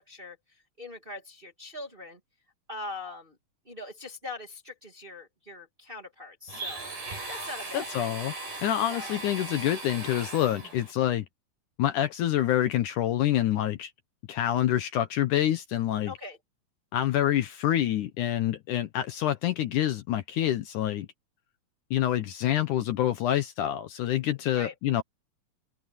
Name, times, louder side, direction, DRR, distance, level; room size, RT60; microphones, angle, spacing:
voice 1, 0.0-2.2 2.7-3.4 3.6-6.9 7.3-8.2 8.8-9.2 16.0-16.4 24.5-24.7, left 2 dB, 20° right, 1.6 m, -42 dB
Domestic sounds home sounds, 6.5-10.9, right 2 dB, 80° right, 9.9 m, -38 dB
voice 2, 7.7-8.3 8.6-11.3 11.8-13.9 14.3-16.1 16.9-21.1 21.9-25.0, left 12 dB, 70° left, 2.1 m, -27 dB
omnidirectional pair, 4.2 m